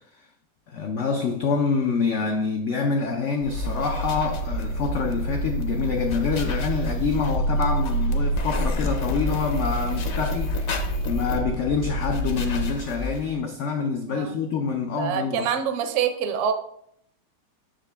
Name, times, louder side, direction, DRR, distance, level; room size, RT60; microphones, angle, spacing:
voice 1, 0.7-15.5, left 5 dB, 85° left, 0.6 m, -26 dB
sound 1, 3.4-13.3, equal, 55° left, 0.8 m, -27 dB
voice 2, 14.9-16.5, right 8 dB, 60° right, 0.8 m, -26 dB
6.6 x 5.0 x 3.3 m
omnidirectional pair, 1.9 m